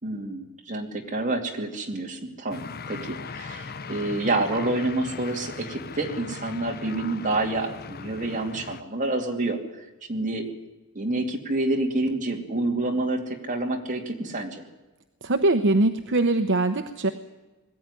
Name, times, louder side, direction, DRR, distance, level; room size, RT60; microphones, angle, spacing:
voice 1, 0.0-9.8 10.1-10.5 10.9-14.6, right 2 dB, 35° right, 1 dB, 2.8 m, -28 dB
sound 1, 2.5-8.8, left 4 dB, 45° left, 0.7 m, -39 dB
voice 2, 15.2-17.1, right 2 dB, 55° right, 8 dB, 0.9 m, -22 dB
21.0 x 14.5 x 9.9 m, 1.2 s
head